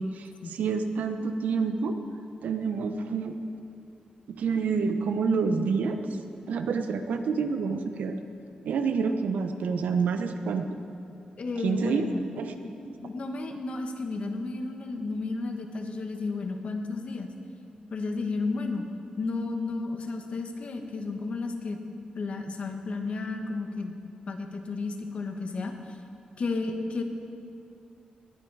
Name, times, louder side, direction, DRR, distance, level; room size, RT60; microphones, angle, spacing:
voice 1, 0.0-2.0 2.4-3.4 4.3-6.0 6.5-8.2 8.6-10.7 11.6-12.1 12.4-12.5 12.9-13.0, right 5 dB, 90° right, 7 dB, 0.9 m, -28 dB
voice 2, 11.4-12.3 13.0-17.3 17.9-18.9 19.2-21.8 22.1-24.0 24.3-26.0 26.4-27.0, left 3 dB, 50° left, 4 dB, 1.3 m, -32 dB
19.5 x 10.0 x 4.8 m, 2.6 s
wide cardioid pair, 130°, 3 cm